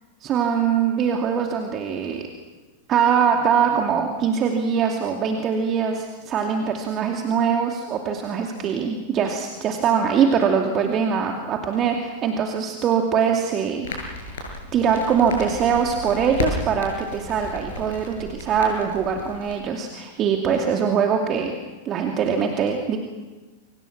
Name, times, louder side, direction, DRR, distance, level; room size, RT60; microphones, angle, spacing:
voice 1, 0.2-2.2 2.9-14.3 14.7-21.5 21.8-23.0, right 7 dB, 30° right, 2 dB, 2.6 m, -22 dB
Crackle, 13.8-19.6, left 2 dB, 60° left, 7.5 m, -34 dB
29.0 x 25.5 x 6.0 m, 1.2 s
figure-of-eight pair, 90°, 0 cm